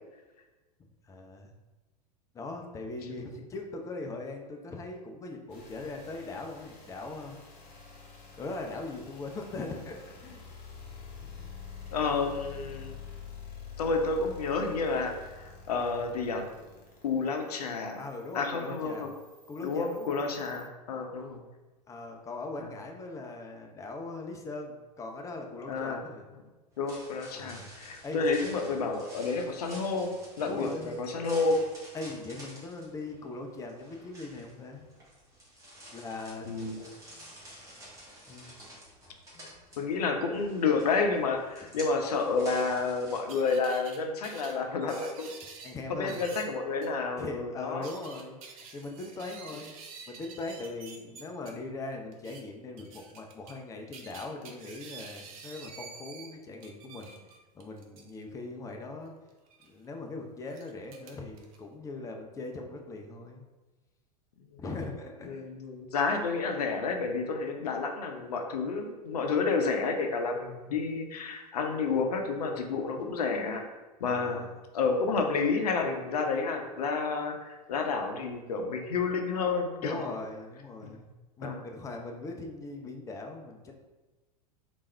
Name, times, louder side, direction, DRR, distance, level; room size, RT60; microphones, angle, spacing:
voice 1, 1.1-1.5 2.3-7.4 8.4-10.4 10.9-11.5 18.0-19.1 19.5-20.3 21.9-26.3 27.3-27.7 28.0-28.2 30.5-31.0 31.9-34.9 35.9-36.9 37.2-37.3 38.3-38.5 39.3-39.7 45.6-46.2 47.2-48.4 48.7-49.7 50.1-57.2 57.5-59.1 59.6-63.4 64.6-65.4 74.1-74.6 79.8-83.7, left 2 dB, 15° left, 3 dB, 0.5 m, -40 dB
sound 1, 5.5-20.6, left 6 dB, 40° left, 0.9 m, -48 dB
voice 2, 11.9-12.9 13.8-16.4 17.0-18.0 18.3-19.1 19.6-21.4 22.6-22.7 25.7-26.0 26.8-30.1 30.4-31.6 36.5-36.8 39.8-45.3 45.9-47.9 64.5-64.6 65.2-73.6 74.0-74.4 74.7-80.0 80.8-80.9 81.4-81.6, left 4 dB, 65° left, 4 dB, 0.6 m, -30 dB
sound 2, 26.7-43.2, equal, 15° right, 1.2 m, -50 dB
sound 3, 42.6-42.7 43.3-44.0 44.2-45.7 46.1-46.5 46.8-46.9 47.6-51.5 52.1-52.4 52.8-53.6 53.9-56.3 56.6-58.2 59.5-59.7 60.5-61.6, right 5 dB, 55° right, 0.6 m, -48 dB
3.4 x 2.5 x 3.2 m, 1.2 s
figure-of-eight pair, 90°, 21 cm